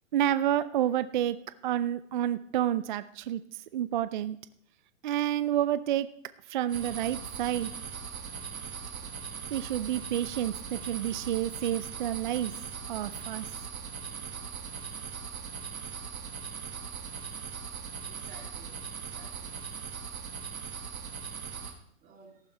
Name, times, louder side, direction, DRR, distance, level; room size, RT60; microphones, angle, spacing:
voice 1, 0.1-1.4 1.6-3.4 3.7-4.4 5.0-6.1 6.5-7.7 9.5-12.5 12.9-13.5 14.1-14.2, right 11 dB, 40° right, 14 dB, 0.4 m, -29 dB
sound 1, 6.7-21.7, right 6 dB, 85° right, 1.9 m, -40 dB
voice 2, 18.1-19.6 22.0-22.4, right 4 dB, 20° right, -1 dB, 3.0 m, -55 dB
14.0 x 12.0 x 3.3 m, 0.70 s
hypercardioid pair, 135°, 41 cm